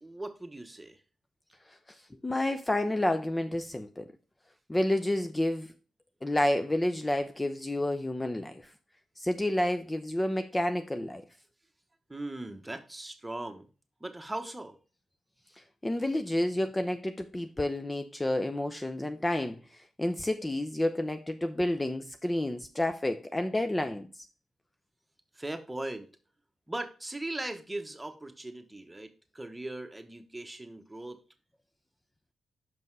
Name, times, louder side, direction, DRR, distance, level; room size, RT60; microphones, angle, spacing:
voice 1, 0.0-1.0 12.1-13.7 14.0-14.8 25.3-26.1 26.7-31.2, right 1 dB, 15° right, 1.2 m, -39 dB
voice 2, 2.2-4.1 4.7-5.7 6.2-8.7 9.2-11.2 15.8-24.1, left 1 dB, 20° left, 0.6 m, -30 dB
5.5 x 5.4 x 4.7 m
cardioid pair, 60°, 0 cm